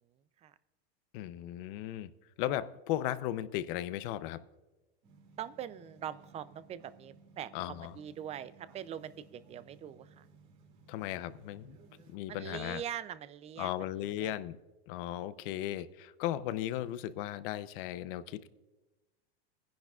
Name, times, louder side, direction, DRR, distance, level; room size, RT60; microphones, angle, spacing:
voice 1, 1.1-2.1 2.4-4.4 7.5-7.9 10.9-11.7 12.1-12.8 13.6-14.6 14.9-18.5, left 13 dB, 60° left, 15 dB, 0.6 m, -36 dB
sound 1, 5.0-12.2, right 4 dB, 60° right, 2.6 m, -60 dB
voice 2, 5.4-10.3 12.3-14.3, right 10 dB, 20° right, 15 dB, 0.4 m, -43 dB
21.0 x 10.5 x 2.4 m, 1.1 s
supercardioid pair, 135°, 31 cm